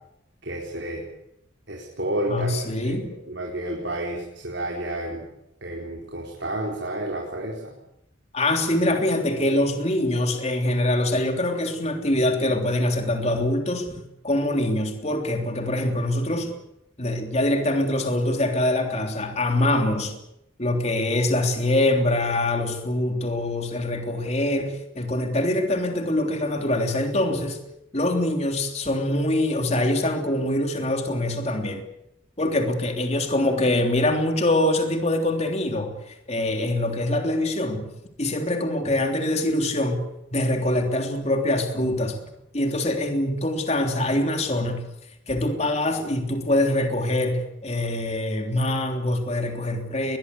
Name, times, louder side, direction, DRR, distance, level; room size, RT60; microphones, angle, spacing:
voice 1, 0.4-1.0 1.7-5.2 5.6-7.7, right 1 dB, 70° right, -1 dB, 4.5 m, -31 dB
voice 2, 2.3-3.1 8.3-13.9 14.2-16.5 17.0-20.1 20.6-27.6 27.9-31.8 32.4-37.9 38.2-40.0 40.3-42.2 42.5-44.8 45.3-50.2, left 1 dB, 35° left, 4 dB, 3.3 m, -24 dB
21.5 x 21.0 x 8.5 m, 0.85 s
head